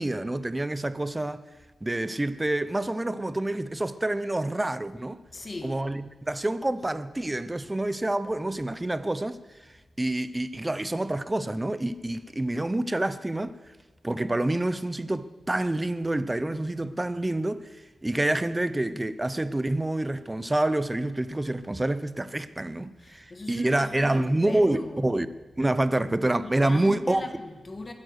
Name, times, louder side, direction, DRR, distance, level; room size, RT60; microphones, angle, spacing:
voice 1, 0.0-1.4 1.8-5.2 5.6-9.4 10.0-13.5 14.0-17.7 18.0-25.3 25.6-27.3, right 1 dB, 15° right, 0.6 m, -27 dB
voice 2, 5.3-5.8 16.4-16.6 23.0-25.1 26.4-27.9, left 2 dB, 30° left, 1.5 m, -39 dB
21.5 x 9.7 x 6.4 m
wide cardioid pair, 135°, 0 cm